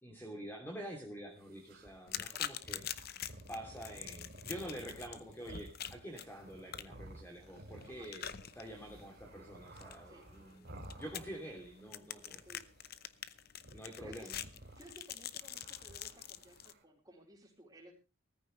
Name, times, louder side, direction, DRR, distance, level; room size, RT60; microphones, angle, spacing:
voice 1, 0.0-2.8 3.5-12.4 13.7-14.4, equal, 10° left, 1 dB, 2.9 m, -47 dB
sound 1, 1.4-11.8 12.1-13.1 13.6-16.8, right 1 dB, 50° right, 2.8 m, -54 dB
sound 2, 2.1-16.7, left 10 dB, 50° left, 0.8 m, -46 dB
voice 2, 14.0-14.3 14.8-17.9, right 1 dB, 20° right, 1 dB, 4.4 m, -57 dB
17.5 x 14.5 x 3.2 m, 0.30 s
head